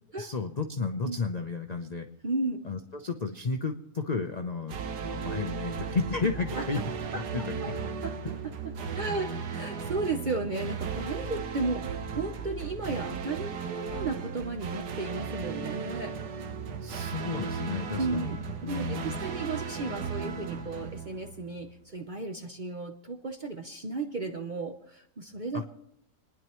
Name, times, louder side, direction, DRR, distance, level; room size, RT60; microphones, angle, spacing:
voice 1, 0.1-2.1 2.6-6.8 7.1-7.6 9.0-9.2 16.8-18.4 18.6-19.2 25.5-25.6, left 4 dB, 55° left, 4 dB, 0.4 m, -33 dB
voice 2, 2.2-2.6 6.5-6.8 7.1-7.7 8.0-8.1 8.4-8.5 8.9-16.1 18.0-18.4 18.6-25.7, right 3 dB, 40° right, 4 dB, 0.7 m, -34 dB
sound 1, 4.7-21.7, right 6 dB, 85° right, 1.5 m, -36 dB
29.5 x 10.5 x 3.0 m, 0.78 s
omnidirectional pair, 1.8 m